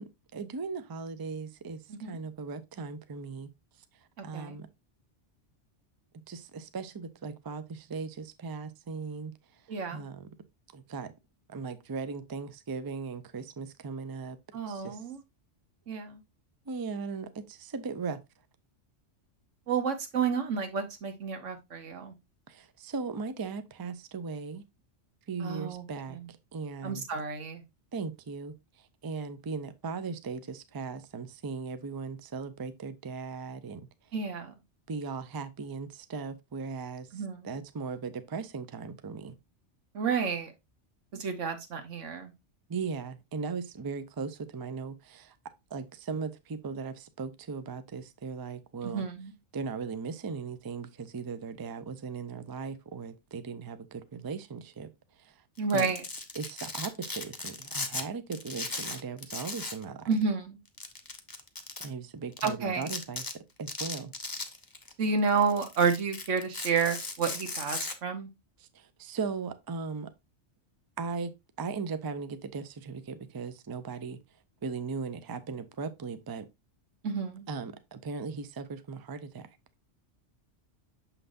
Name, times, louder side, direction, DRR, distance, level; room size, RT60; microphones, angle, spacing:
voice 1, 0.0-3.5 4.2-4.7 6.3-9.3 9.9-10.3 10.7-11.1 11.5-14.4 14.7-15.0 16.7-18.2 22.5-24.6 25.3-26.2 26.5-27.0 27.9-28.5 29.0-33.9 34.9-37.1 37.4-39.3 42.7-45.3 45.7-49.0 49.5-54.9 55.2-55.3 55.7-55.9 56.4-60.1 61.8-64.1 68.7-70.1 71.0-74.2 74.6-76.5 77.5-79.5, right 5 dB, 35° right, 0.3 m, -38 dB
voice 2, 4.2-4.6 9.7-10.1 14.5-15.2 15.9-16.2 19.7-22.1 25.4-26.3 26.8-27.6 34.1-34.5 37.1-37.5 39.9-40.5 41.1-42.3 48.8-49.3 55.6-56.0 60.1-60.6 62.4-62.9 65.0-68.3 77.0-77.5, right 5 dB, 90° right, 1.5 m, -30 dB
Domestic sounds home sounds, 55.6-58.0 58.3-59.8 60.1-60.2 60.8-61.9 62.4-62.5 62.8-63.3 63.7-64.9 65.3-67.9, left 3 dB, 20° left, 0.7 m, -37 dB
6.7 x 5.8 x 2.6 m
omnidirectional pair, 1.2 m